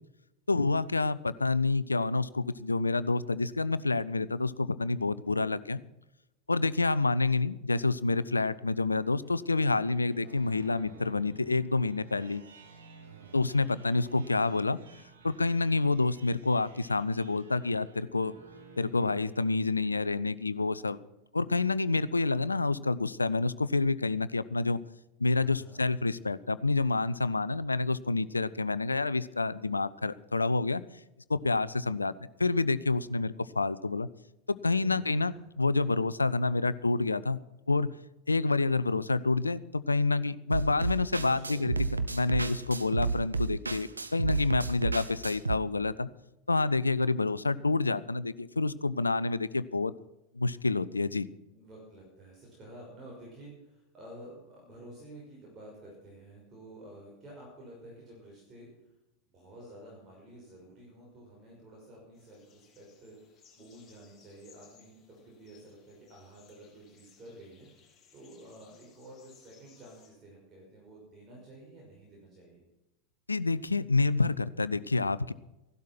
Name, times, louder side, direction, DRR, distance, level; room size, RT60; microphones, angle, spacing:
voice 1, 0.5-5.8 6.5-12.4 13.3-14.8 15.2-18.3 18.8-21.0 21.3-24.8 25.2-30.8 31.3-32.1 32.4-34.1 34.5-37.4 37.7-37.9 38.3-41.7 42.1-46.1 46.5-49.9 50.3-51.3 73.3-75.3, left 3 dB, 80° left, 17 dB, 0.5 m, -28 dB
sound 1, 9.2-20.0, right 4 dB, 65° right, 2.1 m, -53 dB
voice 2, 13.0-13.4 25.3-25.8 34.6-35.4 41.2-42.0 51.5-58.7 59.3-67.7 68.1-72.6, right 1 dB, 25° right, -3 dB, 5.4 m, -51 dB
sound 2, 40.5-45.6, right 4 dB, 80° right, 0.8 m, -31 dB
sound 3, 62.1-70.1, left 6 dB, 20° left, 6.6 m, -63 dB
16.0 x 12.0 x 5.9 m, 0.95 s
figure-of-eight pair, 90°, 0 cm